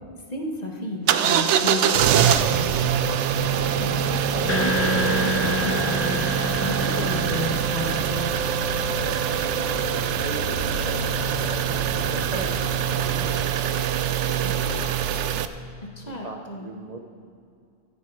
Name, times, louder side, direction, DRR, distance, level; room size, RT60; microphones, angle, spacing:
voice 1, 0.3-2.7 3.5-6.3 6.6-8.3 15.8-16.7, left 1 dB, 35° left, 1 dB, 1.4 m, -32 dB
sound 1, 1.1-15.5, right 9 dB, 85° right, 0.9 m, -24 dB
sound 2, 3.4-13.4, left 8 dB, 75° left, 0.9 m, -37 dB
sound 3, 4.5-9.4, left 1 dB, 15° left, 0.5 m, -29 dB
voice 2, 9.0-15.4 16.0-17.0, right 3 dB, 40° right, 3 dB, 0.7 m, -39 dB
15.0 x 8.4 x 4.7 m, 2.4 s
omnidirectional pair, 1.2 m